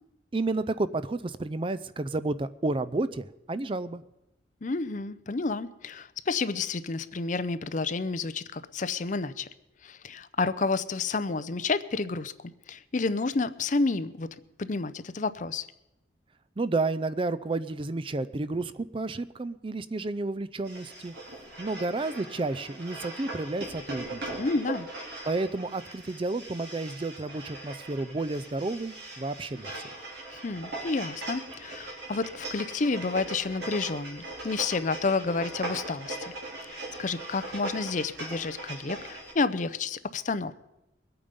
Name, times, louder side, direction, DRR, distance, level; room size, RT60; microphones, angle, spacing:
voice 1, 0.3-4.0 16.6-21.1 21.6-24.4 25.3-30.0, right 2 dB, 30° right, 13 dB, 0.4 m, -31 dB
voice 2, 4.6-9.5 9.8-12.3 12.7-14.3 14.6-15.7 24.4-24.9 30.3-36.3 36.7-40.5, left 3 dB, 40° left, 13 dB, 0.6 m, -30 dB
sound 1, 20.6-39.3, right 2 dB, 60° right, 4.5 m, -40 dB
22.0 x 8.8 x 5.3 m, 0.91 s
head